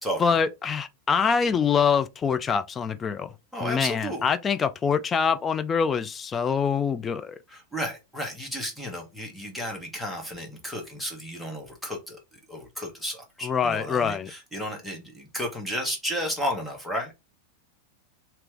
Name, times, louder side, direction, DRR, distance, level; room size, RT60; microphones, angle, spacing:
voice 1, 0.2-3.3 3.6-7.4 13.4-14.3, left 6 dB, 20° left, 0.4 m, -25 dB
voice 2, 3.5-4.3 7.5-17.1, equal, ahead, 1.4 m, -33 dB
3.3 x 2.9 x 3.4 m
figure-of-eight pair, 90°, 0 cm